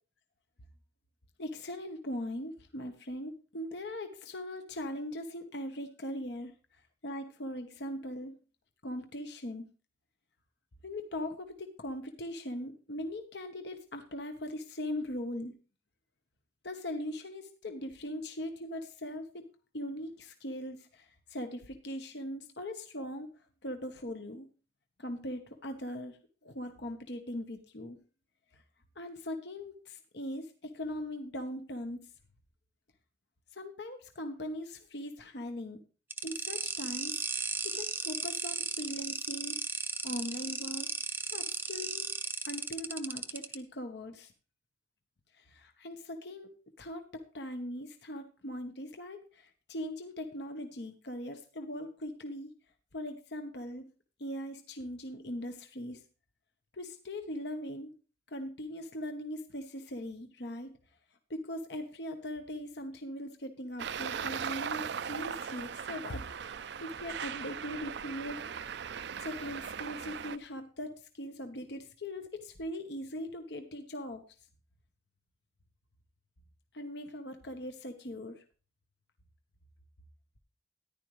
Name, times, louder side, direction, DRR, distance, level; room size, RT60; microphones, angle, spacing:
voice 1, 1.4-6.5 7.0-8.3 8.8-9.6 10.8-15.5 16.6-19.4 19.7-23.3 23.6-24.5 25.0-28.0 28.5-28.6 29.0-32.0 33.5-35.8 36.2-39.6 40.0-40.9 41.3-42.1 42.4-44.3 45.3-46.5 46.8-52.5 52.9-53.8 54.2-56.0 56.7-57.9 58.3-60.7 61.3-68.5 69.2-74.2 76.7-78.4, left 1 dB, 65° left, 6 dB, 1.1 m, -40 dB
sound 1, 36.1-43.5, right 4 dB, 10° right, 0.6 m, -36 dB
Traffic noise roadway noise, 63.8-70.4, right 7 dB, 65° right, 0.4 m, -38 dB
14.0 x 10.5 x 3.2 m, 0.35 s
head